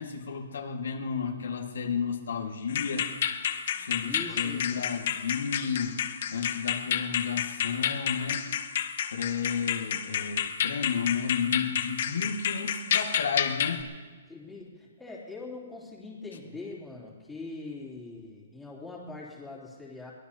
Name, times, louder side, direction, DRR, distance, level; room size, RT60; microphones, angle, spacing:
voice 1, 0.0-3.1 3.7-6.0 6.3-8.4 9.1-13.9, left 6 dB, 85° left, 2 dB, 1.8 m, -32 dB
sound 1, 2.7-13.8, left 9 dB, 50° left, 1.0 m, -31 dB
voice 2, 4.0-4.8 14.3-20.1, left 3 dB, 5° left, -7 dB, 2.9 m, -42 dB
23.0 x 18.5 x 2.8 m, 1.4 s
hypercardioid pair, 165°, 0 cm